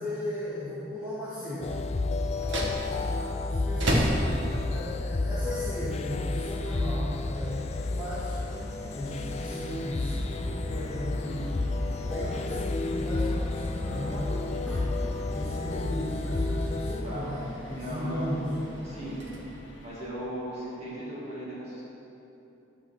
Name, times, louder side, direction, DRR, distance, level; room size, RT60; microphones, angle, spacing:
voice 1, 0.0-1.8 2.8-3.1 3.5-4.2 4.7-8.5 8.9-11.5 12.0-14.9 15.3-18.5, equal, 10° right, -12 dB, 1.8 m, -36 dB
sound 1, 1.6-17.0, left 2 dB, 30° left, 0.3 m, -31 dB
sound 2, 2.3-20.1, equal, 65° right, 1.4 m, -37 dB
sound 3, 7.4-20.1, left 1 dB, 60° left, 1.2 m, -55 dB
voice 2, 17.7-18.3 18.8-19.2 19.8-21.8, equal, 30° right, -8 dB, 2.2 m, -37 dB
12.0 x 4.5 x 7.0 m, 2.9 s
head